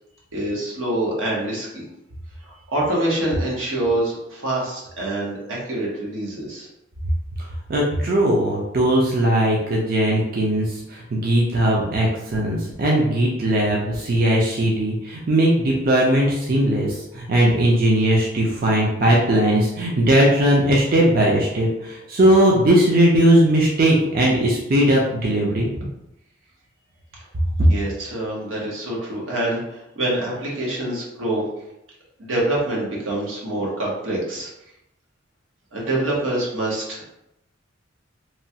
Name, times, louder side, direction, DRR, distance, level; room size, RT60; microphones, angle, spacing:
voice 1, 0.3-1.9 2.4-6.7 27.7-31.4 32.2-34.5 35.7-37.1, right 1 dB, 90° right, -4 dB, 1.0 m, -25 dB
voice 2, 7.4-25.7, right 1 dB, 50° right, -3 dB, 0.5 m, -19 dB
3.0 x 2.2 x 2.7 m, 0.86 s
head